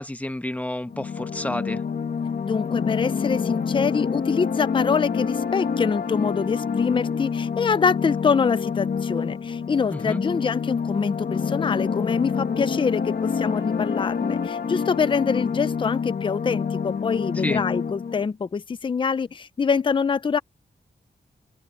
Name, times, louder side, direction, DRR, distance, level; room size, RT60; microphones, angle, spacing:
voice 1, 0.0-1.8 9.9-10.2 17.4-17.6, left 1 dB, 10° left, 1.1 m, -30 dB
sound 1, 0.9-18.2, left 6 dB, 65° left, 1.4 m, -27 dB
voice 2, 2.4-20.4, left 5 dB, 30° left, 0.5 m, -25 dB
wide cardioid pair, 175°, 17 cm